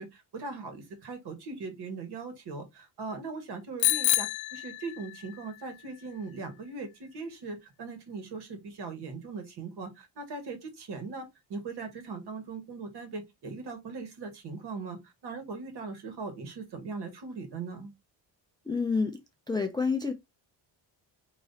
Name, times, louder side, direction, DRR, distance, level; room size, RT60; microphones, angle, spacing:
voice 1, 0.0-17.9, right 4 dB, 60° right, 1.6 m, -40 dB
Bicycle bell, 3.8-5.4, left 17 dB, 90° left, 0.6 m, -28 dB
voice 2, 18.7-19.2 19.5-20.1, left 4 dB, 10° left, 0.3 m, -28 dB
4.1 x 2.9 x 4.0 m
cardioid pair, 175°, 45 cm